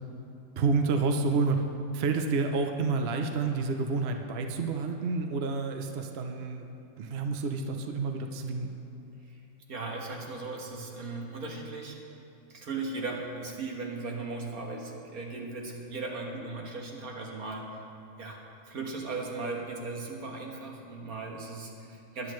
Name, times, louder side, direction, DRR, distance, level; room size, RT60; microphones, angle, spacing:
voice 1, 0.6-1.6 1.9-6.7 7.0-8.7, right 4 dB, 55° right, 4 dB, 0.9 m, -29 dB
voice 2, 9.7-12.0 12.5-17.8 18.2-18.4 18.7-22.3, right 3 dB, 80° right, 0 dB, 1.9 m, -37 dB
21.5 x 8.6 x 3.2 m, 2.6 s
omnidirectional pair, 1.5 m